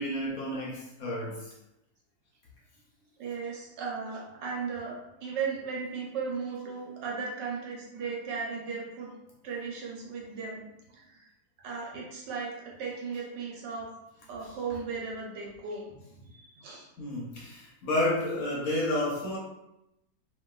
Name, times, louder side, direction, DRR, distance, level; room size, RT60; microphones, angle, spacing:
voice 1, 0.0-1.5 17.0-19.4, left 1 dB, 65° left, -4 dB, 1.0 m, -31 dB
voice 2, 3.2-4.9 5.2-9.1 9.4-10.6 10.9-11.2 11.6-13.9 14.3-16.0 16.3-16.9, right 5 dB, 80° right, -3 dB, 1.4 m, -36 dB
3.0 x 2.6 x 2.3 m, 0.89 s
omnidirectional pair, 1.9 m